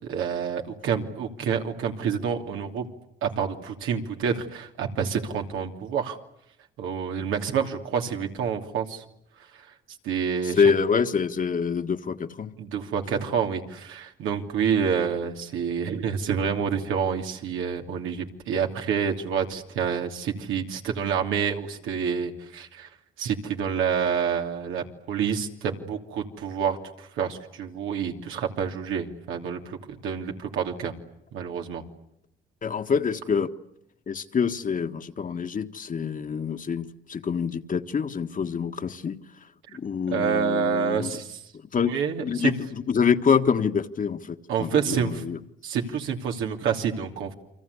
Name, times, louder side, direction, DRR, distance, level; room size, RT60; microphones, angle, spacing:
voice 1, 0.0-2.9 3.2-6.2 6.8-9.0 9.5-9.7 10.0-10.6 12.6-22.9 23.2-30.9 31.3-31.8 40.1-41.4 41.8-42.5 44.5-45.2 45.6-47.3, right 7 dB, 90° right, 3 dB, 3.0 m, -28 dB
voice 2, 10.4-12.5 32.6-33.5 34.1-39.2 39.7-41.1 41.7-45.4, left 6 dB, 45° left, 8 dB, 1.6 m, -26 dB
29.5 x 24.5 x 8.3 m, 0.78 s
cardioid pair, 90°, 20 cm